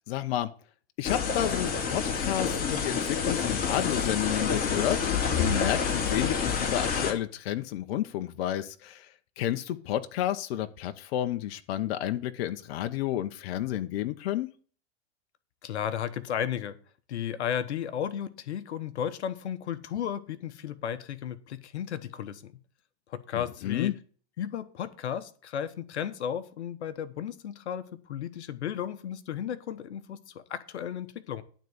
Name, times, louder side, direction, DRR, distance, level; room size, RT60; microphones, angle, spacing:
voice 1, 0.1-0.5 1.0-9.1 9.4-14.5 23.3-23.9, left 12 dB, 60° left, 8 dB, 1.0 m, -31 dB
sound 1, 1.0-7.1, left 6 dB, 25° left, 3.1 m, -28 dB
voice 2, 15.6-16.8 17.1-22.5 23.1-24.0 24.4-31.4, left 9 dB, 85° left, 11 dB, 1.1 m, -34 dB
12.0 x 4.1 x 8.0 m, 0.42 s
hypercardioid pair, 120°, 33 cm